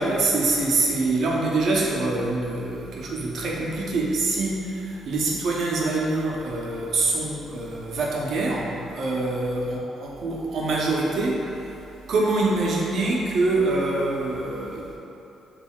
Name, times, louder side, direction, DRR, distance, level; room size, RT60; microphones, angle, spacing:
voice 1, 0.0-11.8 12.1-15.0, right 2 dB, 65° right, -3 dB, 0.8 m, -25 dB
7.1 x 2.7 x 2.4 m, 3.0 s
cardioid pair, 90°, 0 cm